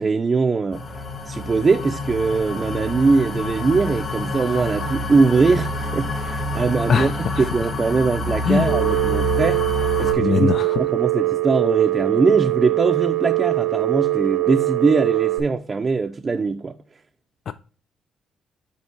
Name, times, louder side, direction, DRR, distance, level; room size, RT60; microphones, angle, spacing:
voice 1, 0.0-7.3 7.5-9.6 10.0-10.5 10.8-16.8, right 4 dB, 35° right, 0.4 m, -21 dB
sound 1, 0.7-10.1, left 1 dB, 40° left, 1.5 m, -28 dB
voice 2, 6.9-7.5 8.4-8.7 10.2-10.8 17.5-17.6, left 7 dB, 60° left, 0.3 m, -21 dB
Telephone, 8.7-15.4, right 18 dB, 75° right, 0.9 m, -22 dB
5.5 x 4.5 x 4.5 m
cardioid pair, 90°, 0 cm